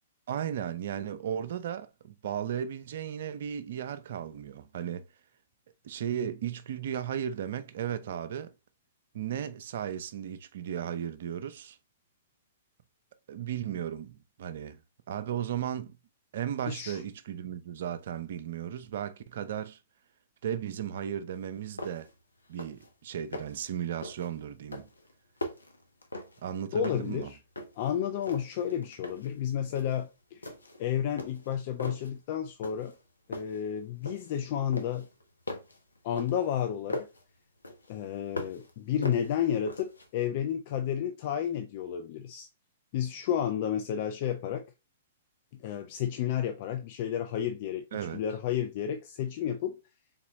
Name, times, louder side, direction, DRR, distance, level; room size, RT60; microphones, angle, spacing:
voice 1, 0.3-5.1 5.8-8.5 9.1-11.8 13.3-14.8 15.1-16.0 16.3-19.8 20.4-22.1 22.5-24.9 26.4-27.3 47.9-48.2, right 9 dB, 55° right, 0.5 m, -35 dB
voice 2, 16.7-17.0 26.7-27.4 27.8-30.5 30.8-32.9 33.3-35.1 36.0-37.1 37.9-42.5 42.9-44.6 45.6-49.8, left 9 dB, 45° left, 0.5 m, -31 dB
sound 1, 21.3-21.4 21.8-22.2 22.5-22.9 23.2-23.7 24.0-24.3 24.7-26.5 26.8-27.9 28.2-29.3 29.7-30.0 30.4-30.8 31.2-32.1 32.6-33.0 33.3-34.4 34.7-37.2 37.6-38.7 39.0-40.1, left 1 dB, 80° left, 0.9 m, -40 dB
3.9 x 3.5 x 3.0 m
figure-of-eight pair, 110°, 0 cm